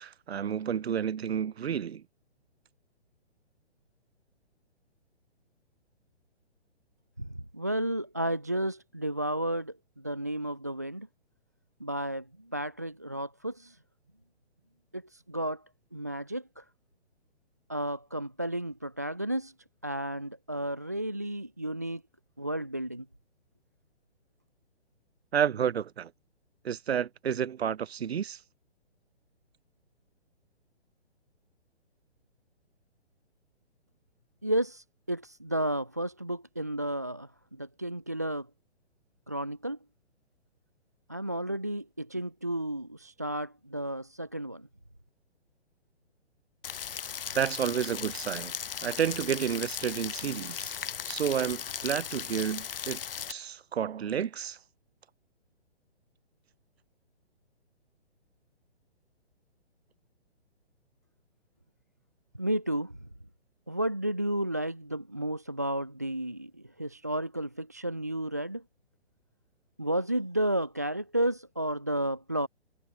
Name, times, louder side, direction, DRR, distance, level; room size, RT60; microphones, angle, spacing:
voice 1, 0.0-2.0 25.3-26.1 26.6-28.4 47.3-48.5 48.8-50.7 51.1-53.0 53.3-54.6, right 8 dB, 70° right, 0.5 m, -30 dB
voice 2, 7.2-11.1 11.8-13.8 14.9-15.6 15.9-16.6 17.7-19.5 19.8-22.0 22.4-23.1 34.4-38.5 39.3-39.8 41.1-44.7 62.4-63.1 63.7-68.6 69.8-72.5, right 1 dB, 15° right, 0.3 m, -32 dB
Rain, 46.6-53.3, left 8 dB, 55° left, 0.6 m, -37 dB
figure-of-eight pair, 130°, 33 cm